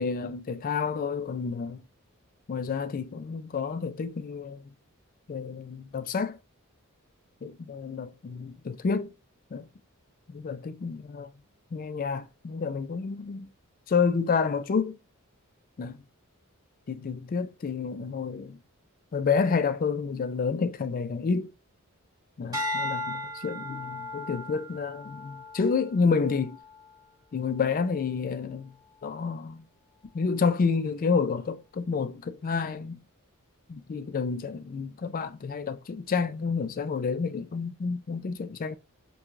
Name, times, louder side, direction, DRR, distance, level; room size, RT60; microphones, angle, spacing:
voice 1, 0.0-1.8 2.5-4.6 5.3-6.4 7.4-9.1 9.5-9.7 10.3-11.3 11.7-13.5 13.9-15.0 15.8-16.0 16.9-18.6 19.1-21.5 22.4-26.6 27.3-28.7 29.0-29.7 30.1-33.0 33.7-38.8, left 5 dB, 40° left, 0.3 m, -29 dB
sound 1, 22.5-27.0 27.6-28.0, left 1 dB, 20° right, 1.2 m, -36 dB
4.5 x 2.3 x 2.5 m
head